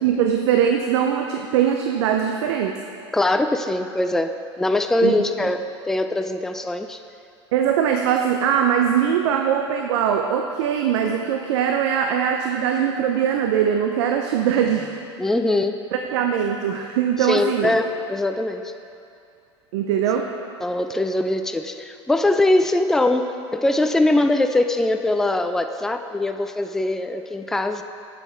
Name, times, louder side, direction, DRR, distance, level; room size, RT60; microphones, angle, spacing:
voice 1, 0.0-2.8 5.0-5.2 7.5-14.9 15.9-17.8 19.7-20.3, right 8 dB, 70° right, 4 dB, 0.5 m, -21 dB
voice 2, 3.1-4.3 4.6-7.0 15.2-15.8 17.2-18.7 20.6-27.8, left 2 dB, 5° left, 7 dB, 0.4 m, -22 dB
8.0 x 6.8 x 4.5 m, 2.6 s
hypercardioid pair, 95°, 15 cm